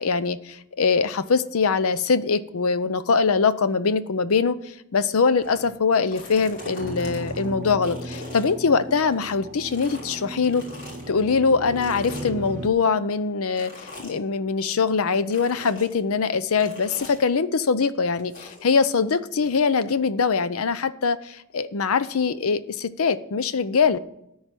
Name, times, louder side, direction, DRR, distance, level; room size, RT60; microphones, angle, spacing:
voice 1, 0.0-10.7 11.1-24.0, left 5 dB, 70° left, 14 dB, 0.6 m, -23 dB
sound 1, 5.4-5.7 6.0-9.3 9.6-11.1 11.8-12.5 13.5-14.2 15.3-15.9 16.6-17.2 18.3-18.6, left 3 dB, 55° left, 3.8 m, -41 dB
sound 2, 6.8-12.7, right 2 dB, 35° right, 0.8 m, -36 dB
13.5 x 4.8 x 8.9 m, 0.79 s
head